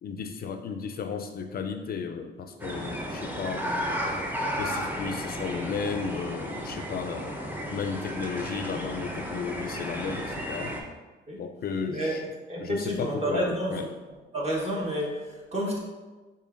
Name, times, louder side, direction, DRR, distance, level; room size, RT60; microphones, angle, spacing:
voice 1, 0.0-4.2 4.6-7.4 7.7-10.8 11.4-12.2 12.6-13.9, left 6 dB, 50° left, 7 dB, 0.4 m, -34 dB
sound 1, 2.6-10.8, equal, 10° right, 0.7 m, -33 dB
voice 2, 11.9-12.2 12.5-13.8 14.3-15.8, right 1 dB, 35° right, -3 dB, 1.3 m, -29 dB
5.4 x 3.8 x 2.5 m, 1.3 s
cardioid pair, 90°, 20 cm